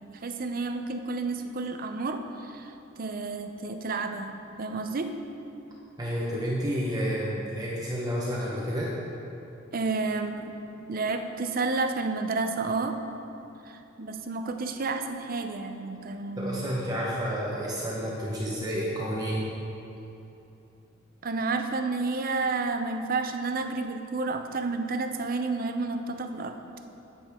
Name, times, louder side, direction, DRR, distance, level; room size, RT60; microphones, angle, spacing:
voice 1, 0.1-2.7 3.0-4.3 4.6-5.1 9.7-10.6 10.9-13.0 13.7-16.6 21.2-26.6, right 3 dB, 45° right, 6 dB, 0.5 m, -30 dB
voice 2, 6.0-8.9 16.4-19.5, equal, 20° right, -5 dB, 1.0 m, -30 dB
10.0 x 8.5 x 3.6 m, 2.9 s
head